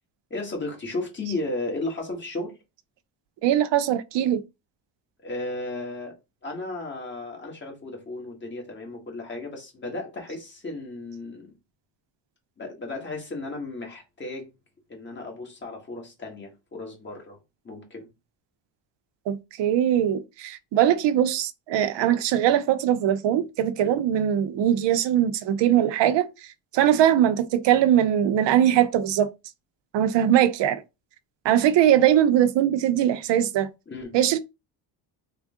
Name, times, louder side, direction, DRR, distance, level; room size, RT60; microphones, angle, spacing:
voice 1, 0.3-2.5 5.2-6.1 6.4-11.5 12.6-14.5 14.9-17.4 17.6-18.1 22.0-22.1 23.8-24.0 33.9-34.1, left 2 dB, 20° left, 1.5 m, -34 dB
voice 2, 3.4-4.4 19.3-26.3 26.7-29.3 29.9-30.8 31.4-33.7 34.1-34.4, right 11 dB, 60° right, 0.6 m, -21 dB
3.5 x 2.2 x 3.6 m
cardioid pair, 110°, 49 cm